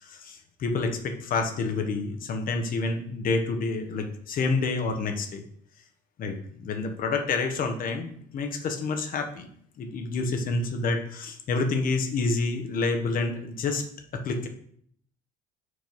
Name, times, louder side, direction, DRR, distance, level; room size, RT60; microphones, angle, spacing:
voice 1, 0.0-5.4 6.2-9.5 9.8-13.8 14.1-14.5, left 3 dB, 45° left, 6 dB, 1.1 m, -28 dB
4.8 x 4.4 x 5.4 m, 0.63 s
hypercardioid pair, 60°, 19 cm